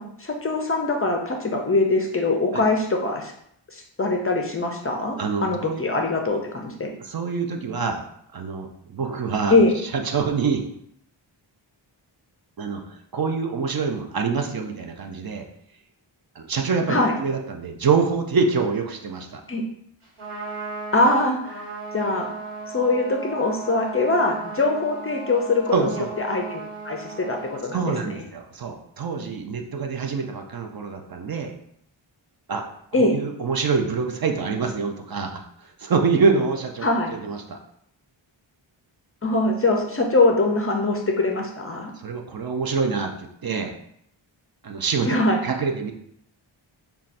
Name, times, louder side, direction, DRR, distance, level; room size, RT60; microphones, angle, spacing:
voice 1, 0.0-3.3 3.7-6.9 9.5-9.8 16.9-17.1 19.5-19.6 20.9-21.6 21.9-22.3 22.7-27.8 32.9-33.2 36.8-37.1 39.2-41.9 45.1-45.4, left 2 dB, 30° left, 2 dB, 0.4 m, -22 dB
voice 2, 5.2-5.8 7.0-8.1 8.3-9.6 9.9-10.6 12.6-15.5 16.4-19.4 25.7-26.2 27.7-31.5 32.5-37.6 42.0-43.7 44.6-45.1 45.4-45.9, right 5 dB, 50° right, 4 dB, 0.5 m, -25 dB
Trumpet, 20.0-27.6, right 3 dB, 90° right, 1.2 m, -36 dB
5.4 x 2.3 x 2.5 m, 0.71 s
wide cardioid pair, 85°, 48 cm